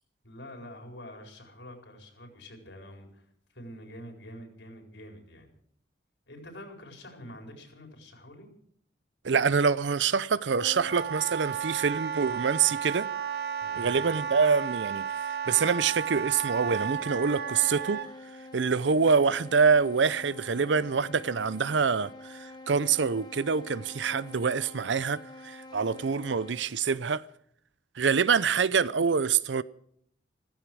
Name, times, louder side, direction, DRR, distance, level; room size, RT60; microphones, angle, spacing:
voice 1, 0.2-3.3 3.5-5.5 6.3-8.5 13.6-13.9, left 1 dB, 85° left, 4.4 m, -46 dB
voice 2, 9.2-13.1 13.8-15.1 15.5-18.0 18.5-27.2 28.0-29.6, right 5 dB, 90° right, 0.6 m, -26 dB
Wind instrument woodwind instrument, 10.5-18.1, right 7 dB, 60° right, 1.1 m, -33 dB
sound 1, 16.4-26.7, left 2 dB, 25° left, 2.3 m, -47 dB
15.0 x 15.0 x 6.2 m
head